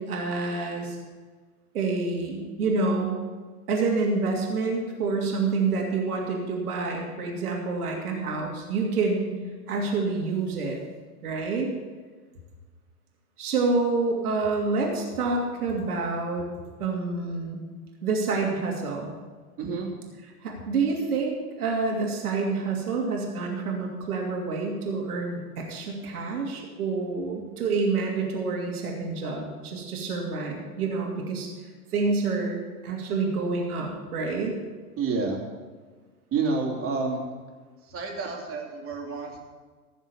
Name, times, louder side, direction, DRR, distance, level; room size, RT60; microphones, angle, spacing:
voice 1, 0.1-1.0 1.7-3.1 3.7-9.3 9.7-10.8 11.2-11.7 13.4-16.4 16.8-17.6 18.0-19.1 20.4-31.5 31.9-34.5, right 3 dB, 70° right, 0 dB, 2.8 m, -28 dB
voice 2, 19.6-19.9 35.0-35.4 36.3-37.2 37.9-39.4, right 4 dB, 30° right, 0 dB, 3.0 m, -29 dB
15.5 x 7.3 x 7.0 m, 1.4 s
hypercardioid pair, 105°, 46 cm